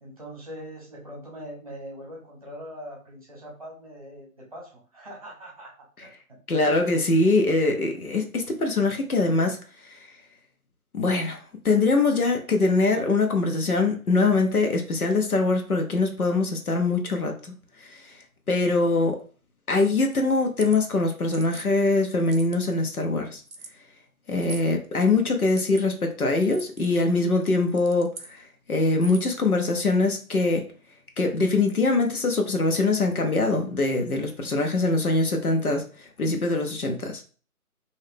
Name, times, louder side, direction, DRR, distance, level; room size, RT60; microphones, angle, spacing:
voice 1, 0.0-5.7 6.0-6.4 7.9-8.0, equal, 25° right, 1.0 m, -42 dB
voice 2, 6.5-9.6 9.9-10.0 10.9-11.4 11.6-17.5 17.9-18.1 18.5-19.2 19.7-23.4 24.3-30.7 31.2-37.2, left 3 dB, 75° left, 1.0 m, -23 dB
sound 1, 20.4-20.8 21.3-21.7 22.2-22.7 23.5-23.7 24.4-24.7 25.4-25.8 26.4-26.9 27.6-28.3 28.9-29.4, right 3 dB, 65° right, 0.7 m, -42 dB
3.1 x 2.7 x 3.4 m
figure-of-eight pair, 155°, 44 cm